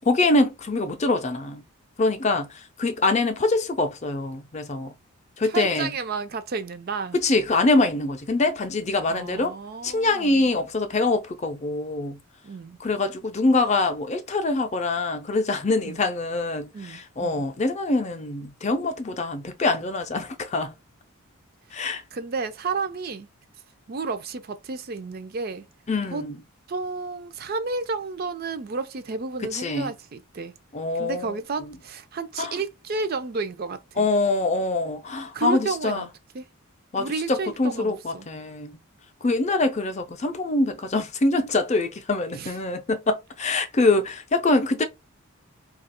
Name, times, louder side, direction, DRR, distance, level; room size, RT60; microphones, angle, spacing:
voice 1, 0.1-1.6 2.0-2.5 2.8-4.9 5.4-5.9 7.2-9.5 9.8-12.2 12.8-20.7 21.7-22.0 25.9-26.3 29.5-29.9 30.7-31.3 32.4-32.5 34.0-36.0 36.9-38.8 39.2-44.8, left 2 dB, 30° left, 0.5 m, -24 dB
voice 2, 5.4-7.2 9.1-10.5 12.4-12.8 15.8-16.1 16.7-17.4 21.7-23.3 23.9-25.7 26.1-26.3 26.7-30.5 30.9-34.1 35.3-36.1 36.3-36.5 37.0-38.3 42.3-42.5, right 4 dB, 45° right, 0.4 m, -32 dB
2.8 x 2.4 x 4.2 m
head